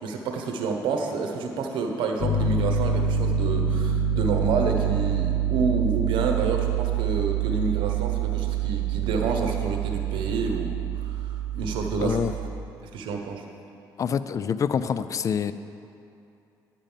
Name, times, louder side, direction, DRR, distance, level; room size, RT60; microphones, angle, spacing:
voice 1, 0.0-12.5 12.9-13.4, right 4 dB, 80° right, 3 dB, 1.1 m, -29 dB
Piano, 2.2-12.5, right 6 dB, 65° left, 0.8 m, -26 dB
voice 2, 12.0-12.3 14.0-15.5, left 7 dB, 40° left, 13 dB, 0.3 m, -26 dB
10.0 x 5.2 x 7.4 m, 2.6 s
cardioid pair, 105°, 8 cm